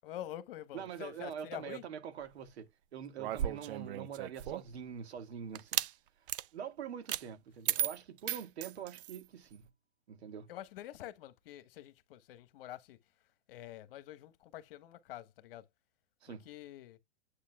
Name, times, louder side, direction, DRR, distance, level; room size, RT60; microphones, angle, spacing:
voice 1, 0.0-1.8 10.5-13.0 13.5-15.6 16.3-17.0, left 13 dB, 60° left, 1.3 m, -47 dB
voice 2, 0.7-5.8 6.5-9.7 10.1-10.5 16.2-16.4, right 8 dB, 80° right, 2.0 m, -44 dB
sound 1, 3.2-4.8 5.5-5.9 6.3-6.5 7.1-7.2 7.7-9.2, right 12 dB, 55° right, 0.7 m, -35 dB
8.5 x 8.2 x 2.3 m
hypercardioid pair, 145°, 32 cm